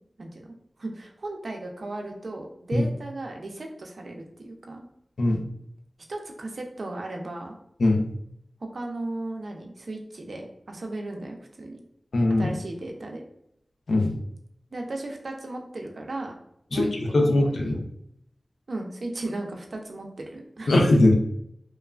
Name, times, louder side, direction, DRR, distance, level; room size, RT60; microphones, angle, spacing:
voice 1, 0.2-4.8 6.1-7.6 8.6-11.8 12.4-13.2 14.7-16.3 16.7-17.7 18.7-20.1 20.3-20.7, right 2 dB, 70° right, 2 dB, 0.5 m, -36 dB
voice 2, 7.8-8.1 12.1-12.5 13.9-14.2 16.7-17.8 20.7-21.1, left 1 dB, 90° left, 2 dB, 0.4 m, -21 dB
3.0 x 2.2 x 2.3 m, 0.76 s
wide cardioid pair, 75°, 0 cm